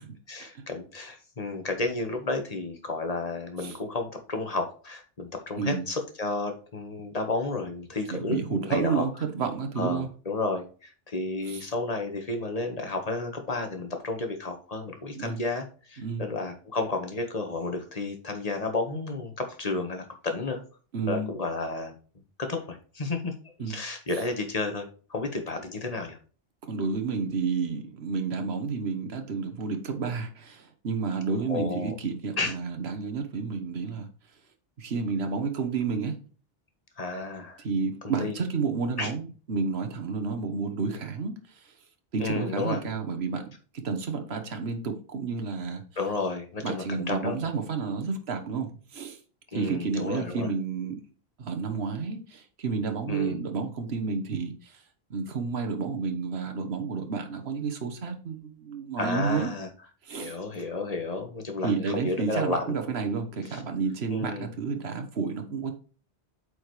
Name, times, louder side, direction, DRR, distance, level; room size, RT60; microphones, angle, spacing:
voice 1, 0.3-9.1 9.8-20.6 21.1-21.9 22.4-26.2 31.5-31.9 32.4-32.5 37.0-37.6 38.0-38.4 39.0-39.1 42.2-42.9 46.0-47.5 49.5-50.5 53.1-53.4 59.0-59.7 60.1-62.8 63.5-63.6 64.1-64.5, left 3 dB, 40° left, 5 dB, 1.5 m, -32 dB
voice 2, 8.1-10.1 11.5-11.7 15.1-15.4 16.0-16.3 20.9-21.3 23.6-23.7 24.1-24.2 26.7-34.1 34.8-36.1 37.6-41.4 42.1-43.5 43.8-45.8 46.6-49.2 49.5-51.0 51.4-54.8 55.1-59.5 60.0-60.4 61.6-65.7, right 5 dB, 80° right, 7 dB, 1.4 m, -30 dB
8.4 x 5.1 x 3.2 m, 0.39 s
omnidirectional pair, 1.0 m